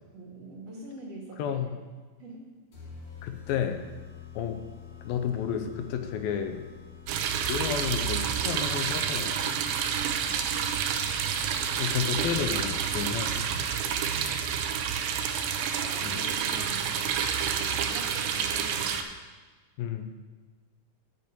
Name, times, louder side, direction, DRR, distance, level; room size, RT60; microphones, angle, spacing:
voice 1, 0.1-1.6 2.2-2.5 10.0-10.5 15.7-17.0 17.5-19.0, right 2 dB, 50° right, -2 dB, 2.6 m, -44 dB
voice 2, 1.4-1.7 3.2-3.8 4.4-4.6 5.0-6.6 7.5-9.5 11.7-13.6 16.0-16.2 19.8-20.1, left 8 dB, 80° left, 7 dB, 2.6 m, -31 dB
sound 1, 2.7-14.1, left 6 dB, 40° left, 3.1 m, -48 dB
sound 2, 7.1-19.0, right 7 dB, 80° right, 2.4 m, -29 dB
8.3 x 6.9 x 8.5 m, 1.3 s
omnidirectional pair, 4.2 m